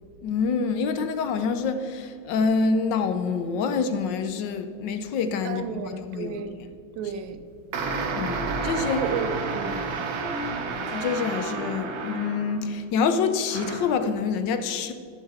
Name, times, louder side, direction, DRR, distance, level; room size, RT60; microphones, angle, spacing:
voice 1, 0.2-6.4 8.2-9.0 10.6-14.9, left 5 dB, 70° left, 1.2 m, -26 dB
voice 2, 5.4-6.6 7.0-7.4 8.9-10.1, right 7 dB, 70° right, 1.4 m, -32 dB
sound 1, 7.7-12.8 13.5-14.0, right 4 dB, 55° right, 1.2 m, -30 dB
11.5 x 7.2 x 4.3 m
omnidirectional pair, 2.4 m